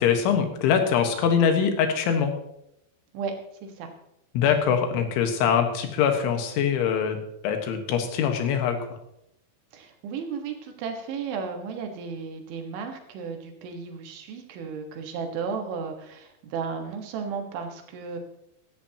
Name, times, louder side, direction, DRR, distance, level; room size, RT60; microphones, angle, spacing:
voice 1, 0.0-2.3 4.4-7.2 7.4-8.8, left 7 dB, 90° left, 5 dB, 3.9 m, -23 dB
voice 2, 9.7-18.2, right 5 dB, 85° right, 4 dB, 4.1 m, -34 dB
16.5 x 13.5 x 3.0 m, 0.79 s
omnidirectional pair, 5.3 m